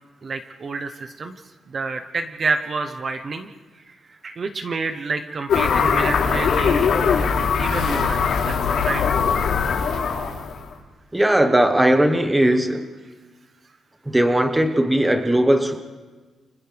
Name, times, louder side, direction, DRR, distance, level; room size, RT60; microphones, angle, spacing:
voice 1, 0.2-1.4 1.7-3.5 3.9-6.9 7.6-9.2, right 4 dB, 35° right, 7 dB, 0.9 m, -29 dB
sound 1, 5.5-10.6, left 6 dB, 75° left, 3.5 m, -21 dB
voice 2, 11.1-12.9 14.1-15.8, right 1 dB, 10° right, 6 dB, 1.1 m, -18 dB
29.5 x 29.5 x 3.5 m, 1.3 s
wide cardioid pair, 180°, 0 cm